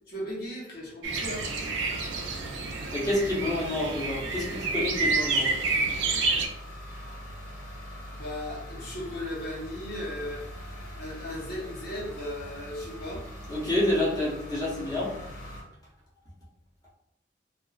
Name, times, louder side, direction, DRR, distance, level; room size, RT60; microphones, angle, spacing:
voice 1, 0.1-1.5 8.1-10.4 11.0-13.2, left 1 dB, 60° left, -5 dB, 0.9 m, -36 dB
sound 1, 1.0-6.5, right 3 dB, 90° right, 0.4 m, -29 dB
sound 2, 1.1-15.6, equal, 75° left, 1.4 m, -43 dB
voice 2, 2.9-5.5 13.5-15.1, left 1 dB, 20° left, -8 dB, 0.7 m, -28 dB
2.3 x 2.3 x 2.3 m, 0.83 s
head